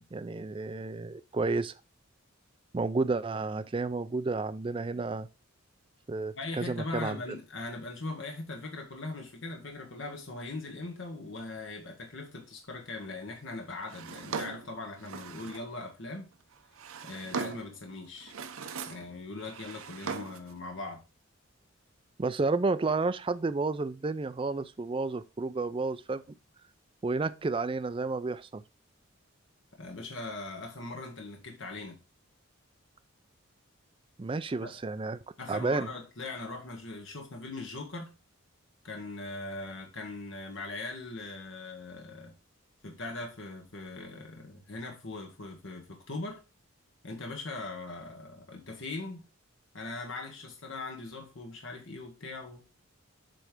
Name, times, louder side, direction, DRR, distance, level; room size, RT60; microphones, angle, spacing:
voice 1, 0.1-1.7 2.7-5.3 6.1-7.2 22.2-26.2 27.0-28.6 34.2-35.2 35.5-35.9, right 3 dB, 25° right, 0.3 m, -31 dB
voice 2, 6.4-16.3 17.0-18.3 18.9-21.0 29.8-32.0 34.6-34.7 35.4-38.1 38.8-42.3 42.8-46.4 47.0-49.2 49.7-52.6, left 2 dB, 60° left, 1.3 m, -40 dB
Drawer open or close, 13.9-15.7 16.5-17.8 18.2-19.1 19.4-20.5, right 5 dB, 75° right, 0.7 m, -39 dB
7.7 x 3.3 x 5.0 m
head